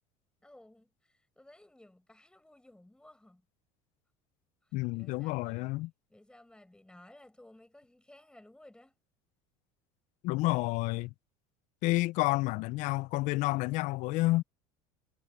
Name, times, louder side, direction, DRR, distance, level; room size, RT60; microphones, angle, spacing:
voice 1, 0.4-3.4 4.6-5.7 6.1-8.9, left 1 dB, 5° left, 7.0 m, -57 dB
voice 2, 4.7-5.9 10.2-11.1 11.8-14.4, left 20 dB, 65° left, 0.5 m, -29 dB
supercardioid pair, 95°, 14 cm